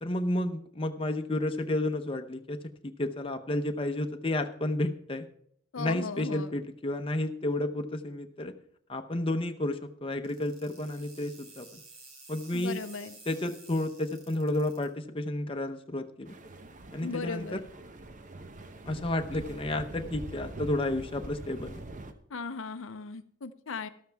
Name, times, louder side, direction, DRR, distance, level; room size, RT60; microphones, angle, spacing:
voice 1, 0.0-2.6 2.8-5.3 5.8-8.5 8.9-11.7 12.3-12.8 13.3-16.3 16.9-17.6 18.9-21.8, left 1 dB, 25° left, 6 dB, 0.8 m, -31 dB
voice 2, 5.7-6.5 12.5-13.2 17.0-17.6 22.3-23.9, left 4 dB, 75° left, 10 dB, 0.7 m, -37 dB
sound 1, 10.2-14.8, right 3 dB, 90° right, 4.1 m, -52 dB
sound 2, 16.3-22.1, right 2 dB, 40° right, 0.9 m, -44 dB
13.0 x 13.0 x 3.5 m, 0.64 s
head